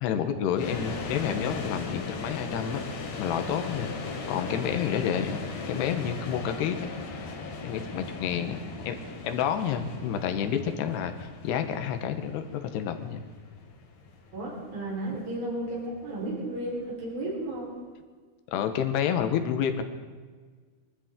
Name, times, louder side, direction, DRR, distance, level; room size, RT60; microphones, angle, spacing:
voice 1, 0.0-2.8 3.2-7.0 7.6-9.0 9.2-13.2 18.5-19.8, left 8 dB, 90° left, 8 dB, 3.1 m, -29 dB
sound 1, 0.6-17.6, left 3 dB, 60° left, 2.3 m, -38 dB
voice 2, 14.3-17.7, right 1 dB, 65° right, -4 dB, 6.1 m, -33 dB
23.5 x 13.0 x 3.7 m, 1.5 s
omnidirectional pair, 4.7 m